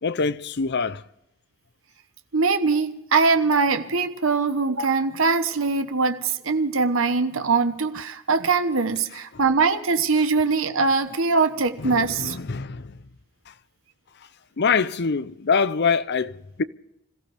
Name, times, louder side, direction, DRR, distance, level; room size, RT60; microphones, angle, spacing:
voice 1, 0.0-1.0 11.8-13.0 14.6-16.6, left 5 dB, 55° left, 0.7 m, -24 dB
voice 2, 2.3-12.4, right 4 dB, 65° right, 1.1 m, -22 dB
26.5 x 15.0 x 3.5 m
head